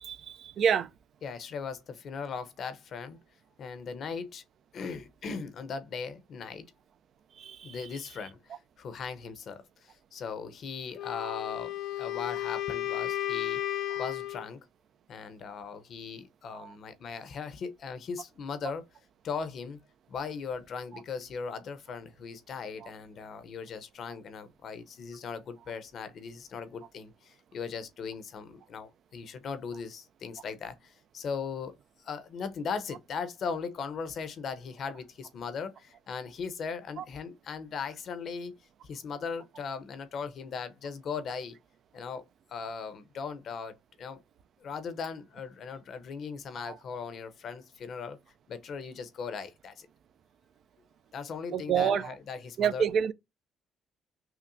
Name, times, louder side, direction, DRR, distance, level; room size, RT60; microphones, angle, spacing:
voice 1, 0.0-0.9 7.4-7.7 16.6-16.7 46.7-46.8 51.5-52.1 52.6-53.1, right 8 dB, 60° right, 0.4 m, -28 dB
voice 2, 1.2-3.2 3.6-4.4 4.7-6.7 7.6-8.4 8.8-13.6 14.0-14.6 15.1-18.8 19.2-19.8 20.1-31.7 32.0-38.5 38.8-41.6 41.9-42.2 42.5-44.2 44.6-48.2 48.5-49.9 51.1-52.9, left 5 dB, 55° left, 0.7 m, -38 dB
Wind instrument woodwind instrument, 10.9-14.5, left 13 dB, 75° left, 0.4 m, -33 dB
5.8 x 2.1 x 2.5 m
cardioid pair, 110°, 0 cm